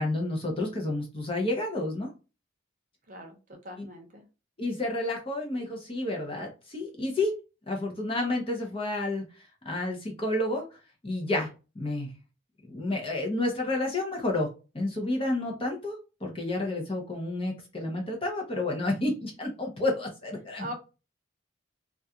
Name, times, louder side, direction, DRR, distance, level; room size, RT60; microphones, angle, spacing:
voice 1, 0.0-2.1 3.8-3.9 4.6-7.3 7.7-9.2 9.6-11.5 11.7-12.1 12.6-14.5 14.7-20.7, left 2 dB, 25° left, 1 dB, 0.7 m, -30 dB
voice 2, 3.6-4.2 20.6-20.8, equal, 40° right, 2 dB, 0.7 m, -40 dB
2.3 x 2.3 x 2.7 m, 0.31 s
head